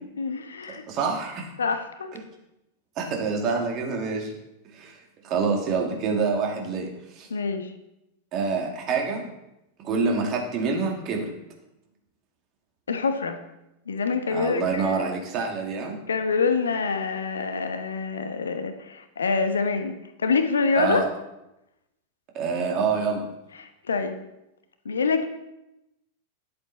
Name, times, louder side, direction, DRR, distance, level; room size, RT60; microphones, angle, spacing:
voice 1, 0.1-0.8 1.6-2.1 7.3-7.7 12.9-13.4 13.9-15.1 16.1-21.0 23.6-24.2 24.8-25.3, left 4 dB, 70° left, 7 dB, 1.1 m, -26 dB
voice 2, 0.9-1.5 3.0-4.3 4.7-5.0 5.2-7.3 8.3-9.3 9.8-11.3 14.3-16.0 20.8-21.1 22.3-23.2, right 4 dB, 35° right, 1 dB, 2.4 m, -26 dB
11.0 x 7.9 x 4.2 m, 0.90 s
figure-of-eight pair, 90°, 0 cm